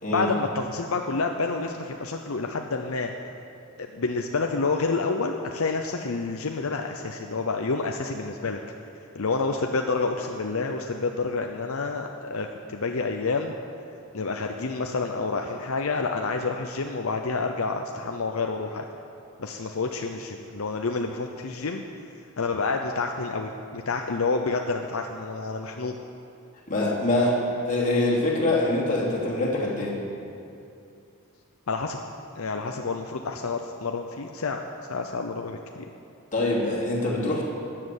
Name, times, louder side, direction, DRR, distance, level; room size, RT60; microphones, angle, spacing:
voice 1, 0.1-3.1 3.8-8.6 9.1-13.5 14.1-18.9 19.4-21.8 22.4-26.0 31.7-32.0 32.4-34.6 34.9-35.6, left 3 dB, 75° left, 3 dB, 0.7 m, -28 dB
voice 2, 26.7-30.0 36.3-37.4, left 1 dB, 35° left, -5 dB, 2.9 m, -24 dB
14.0 x 7.6 x 9.8 m, 2.6 s
head